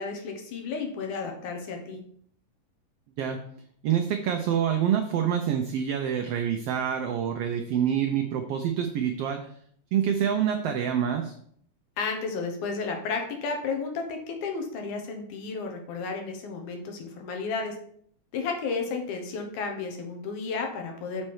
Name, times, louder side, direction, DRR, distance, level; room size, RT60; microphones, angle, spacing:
voice 1, 0.0-2.0 12.0-17.7 18.3-21.3, left 4 dB, 80° left, 3 dB, 2.6 m, -32 dB
voice 2, 3.8-9.5 9.9-11.3, right 9 dB, 90° right, 5 dB, 1.3 m, -26 dB
6.5 x 4.3 x 4.7 m, 0.63 s
omnidirectional pair, 3.5 m